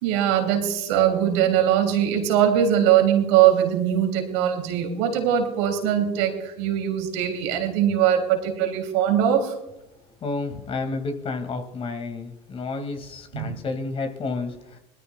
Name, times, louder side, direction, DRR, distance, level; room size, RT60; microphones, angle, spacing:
voice 1, 0.0-9.6 13.3-13.6, right 10 dB, 80° right, 3 dB, 3.3 m, -21 dB
voice 2, 10.2-14.8, left 3 dB, 45° left, 6 dB, 2.5 m, -31 dB
21.5 x 13.5 x 2.5 m, 0.92 s
supercardioid pair, 80°, 14 cm